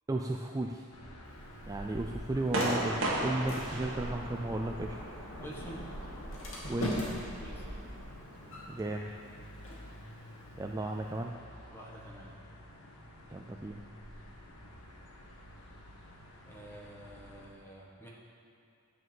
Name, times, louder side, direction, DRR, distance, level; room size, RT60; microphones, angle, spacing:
voice 1, 0.1-0.9 1.7-5.0 6.7-7.1 8.7-9.3 10.6-11.4 13.3-13.8, right 2 dB, 15° right, 1 dB, 0.3 m, -34 dB
sound 1, 0.9-17.5, equal, 90° left, 1.5 m, -48 dB
Sliding door, 1.2-11.2, equal, 60° left, 2.4 m, -43 dB
sound 2, 2.5-8.5, right 1 dB, 60° right, 1.6 m, -38 dB
voice 2, 5.4-5.9 7.4-7.9 11.7-12.3 16.5-18.1, right 1 dB, 10° left, -4 dB, 1.4 m, -48 dB
10.0 x 5.1 x 7.7 m, 2.6 s
head